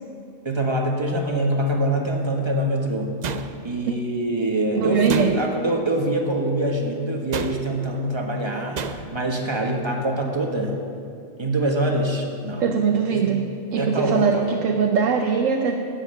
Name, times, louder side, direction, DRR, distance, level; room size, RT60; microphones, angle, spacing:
voice 1, 0.4-3.1 3.6-10.8 11.4-12.7 13.1-13.3 13.8-14.5, right 1 dB, 20° right, 0 dB, 1.5 m, -24 dB
Wooden stcik smashed against metal door, 3.2-3.9 5.1-5.7 7.3-7.9 8.8-9.3, right 6 dB, 60° right, 0.4 m, -32 dB
voice 2, 4.7-5.3 12.6-13.4 13.7-15.8, right 6 dB, 80° right, 3 dB, 1.1 m, -21 dB
14.0 x 8.8 x 5.6 m, 2.4 s
omnidirectional pair, 1.3 m